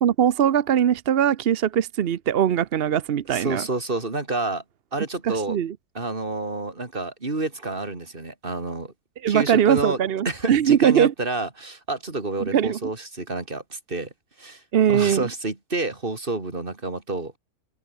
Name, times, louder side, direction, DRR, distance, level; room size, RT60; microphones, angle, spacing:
voice 1, 0.0-3.7 5.2-5.7 9.2-11.1 12.4-12.8 14.7-15.3, right 9 dB, 55° right, 0.6 m, -21 dB
voice 2, 3.3-4.6 4.9-5.6 5.9-8.9 9.3-10.0 10.2-14.1 14.4-14.6 14.9-17.3, right 2 dB, 30° right, 3.2 m, -29 dB
omnidirectional pair, 1.9 m